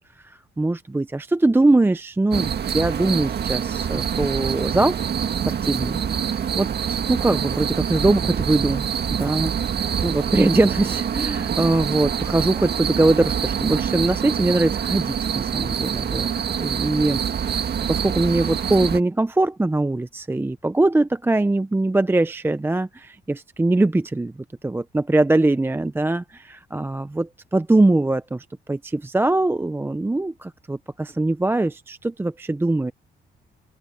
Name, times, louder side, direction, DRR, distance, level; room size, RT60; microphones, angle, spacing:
voice 1, 0.2-5.0 5.4-6.0 6.5-8.8 9.1-16.3 16.6-17.6 17.9-24.3 24.6-32.9, right 2 dB, 10° right, 0.6 m, -22 dB
sound 1, 2.3-19.0, right 8 dB, 55° right, 2.0 m, -25 dB
open air
cardioid pair, 90°, 20 cm